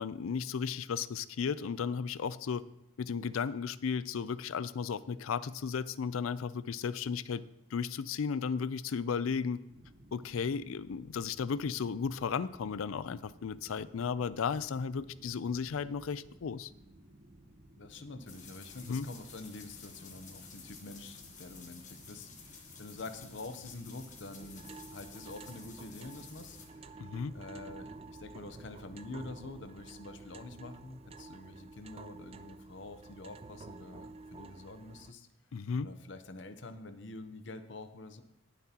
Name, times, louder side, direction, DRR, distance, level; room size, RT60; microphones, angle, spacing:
voice 1, 0.0-2.6 3.0-7.4 7.7-9.6 10.1-16.7 18.9-19.1 27.0-27.3 35.5-35.9, left 6 dB, 90° left, 17 dB, 0.4 m, -34 dB
sound 1, 9.7-29.6, right 1 dB, 55° right, 0.9 m, -58 dB
voice 2, 17.8-26.9 27.3-35.3 35.8-38.2, left 2 dB, 65° left, 10 dB, 0.8 m, -47 dB
sound 2, 18.3-26.7, left 5 dB, 35° left, 1.4 m, -53 dB
sound 3, 24.4-35.1, right 3 dB, 30° right, 0.3 m, -51 dB
19.0 x 7.3 x 2.9 m, 0.83 s
head